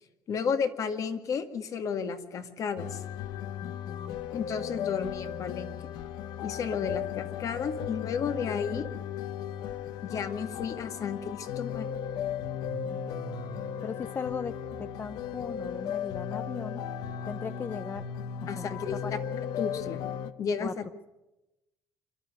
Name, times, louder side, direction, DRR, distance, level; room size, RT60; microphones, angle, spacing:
voice 1, 0.3-3.0 4.3-5.9 6.4-8.9 10.0-11.9 18.5-19.2 19.6-20.0 20.4-20.8, left 6 dB, 50° left, 8 dB, 2.0 m, -32 dB
sound 1, 2.8-20.3, left 9 dB, 80° left, 1.0 m, -36 dB
voice 2, 3.6-4.2 6.8-6.9 13.8-16.8 17.2-18.0 18.6-18.7 19.0-19.1 20.6-20.7, left 6 dB, 30° left, 12 dB, 0.7 m, -38 dB
Car / Engine starting, 10.7-10.8 11.1-16.3, right 10 dB, 75° right, 2.3 m, -49 dB
27.0 x 12.0 x 9.5 m, 0.98 s
cardioid pair, 110°, 7 cm